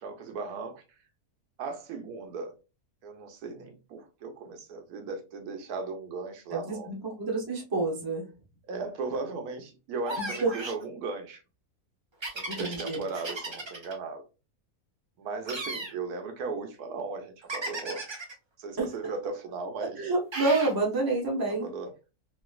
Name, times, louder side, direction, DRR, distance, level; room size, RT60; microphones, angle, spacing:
voice 1, 0.0-0.8 1.6-2.6 3.0-6.9 8.7-11.4 12.3-14.2 15.2-18.1 18.6-20.1 21.5-21.9, right 4 dB, 80° right, 1.2 m, -37 dB
voice 2, 6.5-8.2 10.2-10.5 12.5-13.0 18.8-19.1 19.8-21.7, right 3 dB, 20° right, 0.7 m, -29 dB
sound 1, 10.0-10.8 12.2-13.9 15.4-15.9 17.5-18.3 20.3-20.7, right 2 dB, 50° right, 0.3 m, -35 dB
3.1 x 2.8 x 2.3 m
omnidirectional pair, 1.6 m